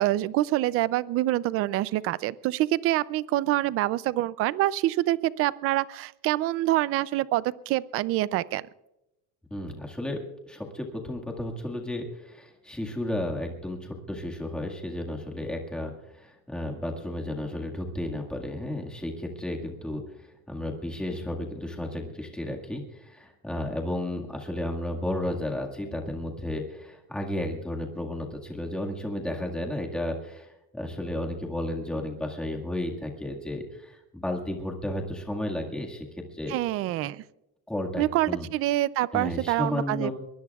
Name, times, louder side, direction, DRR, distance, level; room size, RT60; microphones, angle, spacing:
voice 1, 0.0-8.7 36.5-37.2 38.0-40.1, right 15 dB, 45° right, 18 dB, 0.4 m, -26 dB
voice 2, 9.5-10.2 10.5-36.5 37.7-38.5 39.1-40.1, left 1 dB, 5° left, 0 dB, 1.8 m, -33 dB
23.0 x 20.0 x 2.4 m, 0.90 s
cardioid pair, 180°, 34 cm